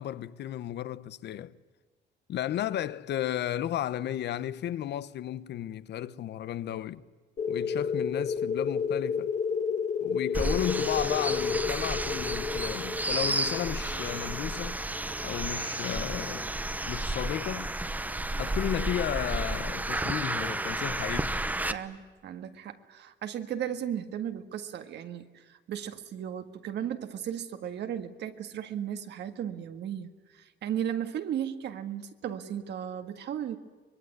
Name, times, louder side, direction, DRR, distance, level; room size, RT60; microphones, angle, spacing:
voice 1, 0.0-1.5 2.3-7.0 7.5-9.3 10.0-14.8 15.2-16.5 16.8-17.7 18.4-21.4, left 11 dB, 65° left, 1.0 m, -34 dB
sound 1, 7.4-15.7, left 6 dB, 40° left, 1.6 m, -31 dB
sound 2, 10.3-21.7, right 1 dB, 10° right, 0.9 m, -32 dB
voice 2, 21.7-33.6, right 9 dB, 65° right, 1.8 m, -35 dB
24.5 x 22.5 x 9.6 m
cardioid pair, 155°, 19 cm